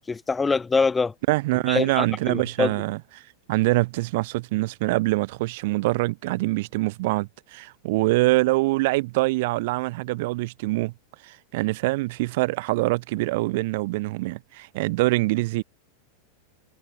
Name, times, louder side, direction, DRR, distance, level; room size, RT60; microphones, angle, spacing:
voice 1, 0.0-1.1 1.7-2.7, left 4 dB, 15° left, 1.2 m, -24 dB
voice 2, 1.3-3.0 3.5-10.9 11.2-15.6, right 21 dB, 50° right, 1.6 m, -24 dB
figure-of-eight pair, 90°, 0 cm